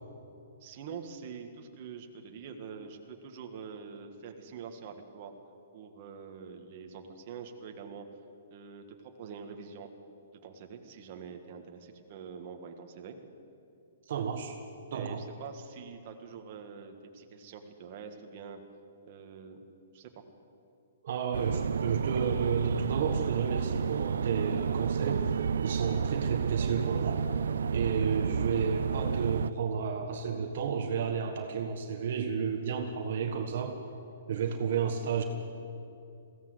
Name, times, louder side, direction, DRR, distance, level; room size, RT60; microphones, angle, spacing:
voice 1, 0.6-5.3 5.7-8.1 8.5-9.9 10.4-13.2 14.9-18.6 19.1-19.6 19.9-20.2, right 6 dB, 35° right, 4 dB, 1.8 m, -45 dB
voice 2, 14.0-14.6 14.9-15.2 21.0-27.3 27.7-33.8 34.3-35.2, right 6 dB, 50° right, 4 dB, 1.5 m, -32 dB
sound 1, 21.3-29.5, right 6 dB, 85° right, 0.5 m, -30 dB
21.5 x 16.5 x 8.0 m, 2.7 s
hypercardioid pair, 170°, 0 cm